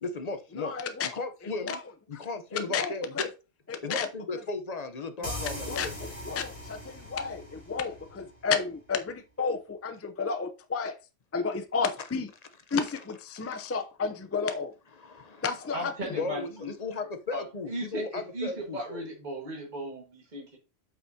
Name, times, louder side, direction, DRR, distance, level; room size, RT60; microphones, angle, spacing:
voice 1, 0.0-0.7 1.1-1.8 2.1-3.3 3.8-5.9 6.2-6.4 12.7-12.8 13.3-13.7 15.0-19.1, left 3 dB, 35° left, 0.9 m, -36 dB
voice 2, 0.6-1.1 1.6-1.8 2.5-3.2 3.7-4.1 5.2-10.9 11.3-12.3 12.7-14.7 15.4-16.2, left 5 dB, 20° left, 0.4 m, -32 dB
sound 1, 5.2-8.7, equal, 55° left, 3.4 m, -40 dB
voice 3, 15.7-16.7 17.3-17.4 17.7-20.6, right 1 dB, 40° right, 1.8 m, -37 dB
8.1 x 5.9 x 2.8 m
omnidirectional pair, 1.2 m